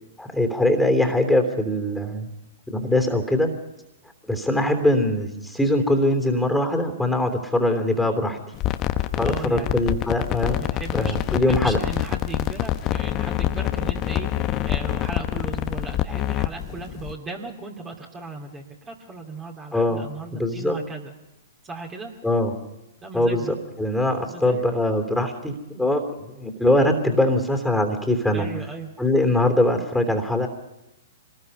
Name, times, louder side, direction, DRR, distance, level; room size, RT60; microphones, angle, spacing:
voice 1, 0.2-2.3 2.7-3.5 4.3-8.4 9.1-10.6 10.9-11.8 19.7-20.8 22.2-22.5 23.1-28.5 29.0-30.5, left 1 dB, ahead, 5 dB, 3.2 m, -22 dB
sound 1, 8.5-17.1, left 13 dB, 35° left, 1.0 m, -26 dB
voice 2, 9.2-9.9 10.6-21.1 21.6-22.1 23.0-23.6 24.3-24.7 28.3-28.9, right 3 dB, 20° right, 1 dB, 2.8 m, -37 dB
25.5 x 20.0 x 5.5 m, 0.94 s
hypercardioid pair, 115°, 0 cm